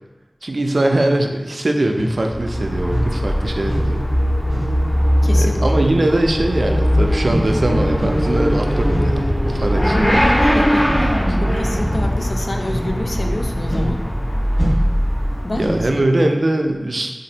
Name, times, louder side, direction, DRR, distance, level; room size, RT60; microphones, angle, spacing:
voice 1, 0.4-4.1 5.3-10.3 11.3-11.6 15.6-17.1, right 1 dB, 65° right, 3 dB, 0.3 m, -21 dB
sound 1, 1.9-2.2 2.9-3.2 3.7-3.9 4.5-4.7 5.4-5.6 6.3-6.6 7.2-7.5 7.9-8.3 8.8-9.2 10.0-10.2 10.8-11.1 11.7-12.0 12.6-12.9 13.7-13.9 14.5-15.0 15.6-15.9, equal, 5° right, 1.3 m, -26 dB
Motorcycle / Accelerating revving vroom, 2.2-16.0, equal, 75° left, 1.1 m, -19 dB
voice 2, 5.2-5.7 10.4-14.0 15.4-15.8 16.1-16.3, left 1 dB, 60° left, 3 dB, 0.3 m, -28 dB
3.9 x 2.5 x 2.8 m, 1.2 s
wide cardioid pair, 50°, 0 cm